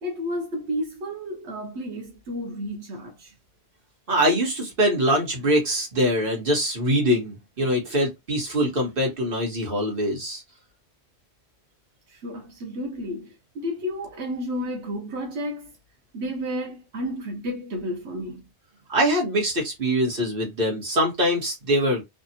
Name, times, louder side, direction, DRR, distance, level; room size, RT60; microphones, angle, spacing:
voice 1, 0.0-3.3 12.1-15.7 16.1-18.4, equal, 85° right, 1.1 m, -32 dB
voice 2, 4.1-10.4 18.9-22.0, equal, 55° right, 1.6 m, -23 dB
3.4 x 2.4 x 2.7 m
omnidirectional pair, 1.1 m